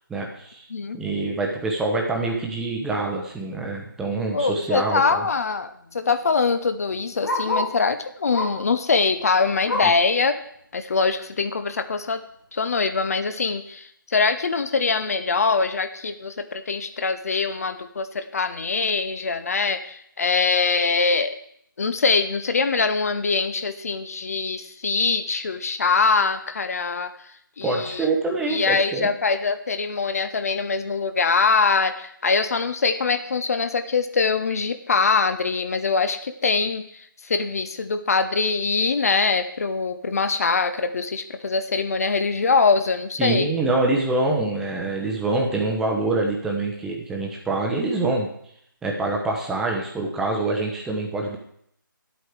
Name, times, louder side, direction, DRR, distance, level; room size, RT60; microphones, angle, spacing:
voice 1, 0.1-0.6 0.9-5.3 9.8-9.9 27.6-29.1 43.2-48.3 48.8-51.4, right 2 dB, 5° right, 0 dB, 0.9 m, -25 dB
voice 2, 4.3-10.4 10.7-12.2 12.5-21.4 21.8-27.1 27.6-28.1 28.5-36.8 37.2-43.5, left 4 dB, 45° left, 11 dB, 0.9 m, -23 dB
Bark, 5.6-7.8 8.3-8.7 9.1-10.1 10.6-10.7 11.0-11.1 11.8-11.9, left 2 dB, 65° left, 2.3 m, -30 dB
11.0 x 8.3 x 4.8 m, 0.70 s
figure-of-eight pair, 150°, 11 cm